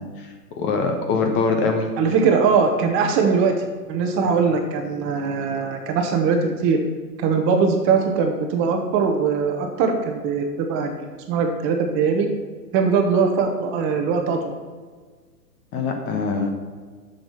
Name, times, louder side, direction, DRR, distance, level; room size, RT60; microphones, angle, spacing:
voice 1, 0.0-1.9 15.7-16.5, left 4 dB, 25° left, 3 dB, 1.1 m, -23 dB
voice 2, 2.0-6.8 7.2-12.3 12.7-14.5, right 5 dB, 25° right, 4 dB, 1.1 m, -21 dB
7.5 x 6.7 x 5.8 m, 1.5 s
hypercardioid pair, 125°, 47 cm